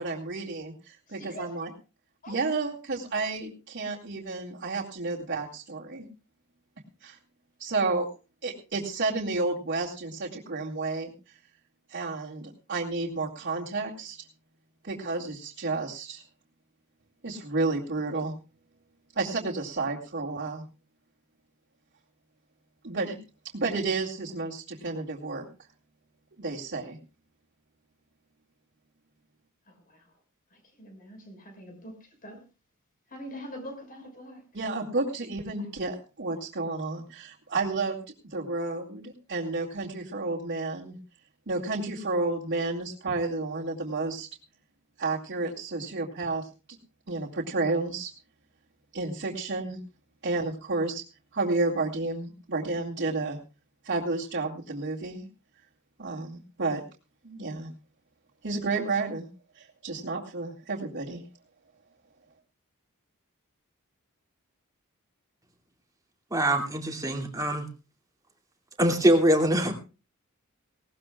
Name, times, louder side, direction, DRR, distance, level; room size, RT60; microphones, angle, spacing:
voice 1, 0.0-1.7 2.3-6.1 7.0-7.2 7.6-8.1 8.4-11.1 11.9-14.3 14.8-16.2 17.2-18.3 19.2-20.6 22.8-23.2 23.5-25.5 26.4-27.0 34.5-41.0 41.5-44.3 45.0-46.8 47.1-48.1 48.9-49.8 50.2-51.0 51.3-53.4 53.8-55.3 56.0-56.8 57.2-57.7 58.4-59.3 59.6-61.2, right 3 dB, 55° right, -7 dB, 2.4 m, -31 dB
voice 2, 1.1-1.7 2.2-2.7 29.7-30.1 30.5-32.4 33.1-34.4 35.6-35.8, equal, 40° left, 5 dB, 5.8 m, -44 dB
voice 3, 66.3-67.7 68.8-69.7, right 1 dB, 15° right, 2 dB, 2.6 m, -23 dB
19.5 x 18.0 x 2.4 m, 0.33 s
head